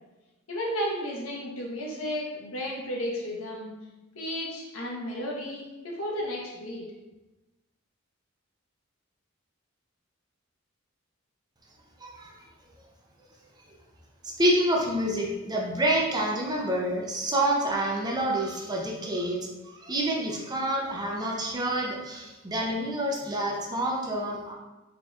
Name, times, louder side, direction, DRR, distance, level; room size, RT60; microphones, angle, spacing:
voice 1, 0.5-3.7 4.1-6.8, equal, 85° left, -3 dB, 1.1 m, -33 dB
voice 2, 12.0-12.3 14.4-24.5, right 1 dB, 20° right, -1 dB, 0.6 m, -28 dB
4.3 x 3.8 x 2.3 m, 1.1 s
head